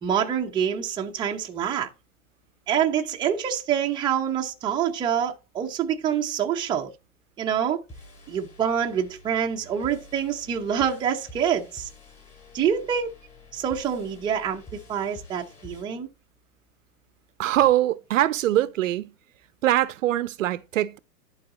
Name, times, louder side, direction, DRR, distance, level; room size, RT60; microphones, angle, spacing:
voice 1, 0.0-1.9 2.7-6.9 7.4-7.8 8.3-11.9 12.5-13.1 13.5-14.6 14.9-16.1, right 8 dB, 10° right, 0.7 m, -26 dB
sound 1, 7.9-15.8, left 1 dB, 15° left, 5.1 m, -48 dB
voice 2, 17.4-19.1 19.6-21.0, right 13 dB, 55° right, 0.7 m, -23 dB
11.5 x 4.0 x 3.9 m
hypercardioid pair, 130°, 45 cm